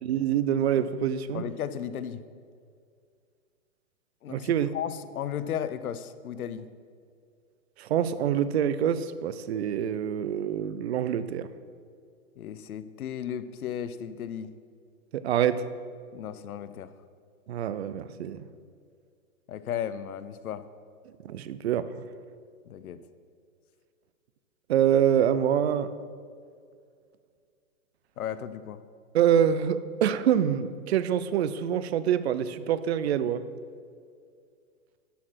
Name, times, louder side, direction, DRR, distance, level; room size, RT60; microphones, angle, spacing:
voice 1, 0.0-1.5 4.3-4.7 7.8-11.5 15.1-15.6 17.5-18.5 21.2-22.0 24.7-25.9 29.1-33.4, right 9 dB, 50° right, 14 dB, 0.5 m, -26 dB
voice 2, 1.3-2.2 4.2-6.7 12.4-14.5 16.1-16.9 19.5-20.6 22.6-23.0 28.2-28.8, left 9 dB, 90° left, 13 dB, 0.8 m, -35 dB
11.5 x 6.5 x 5.7 m, 2.2 s
hypercardioid pair, 165°, 42 cm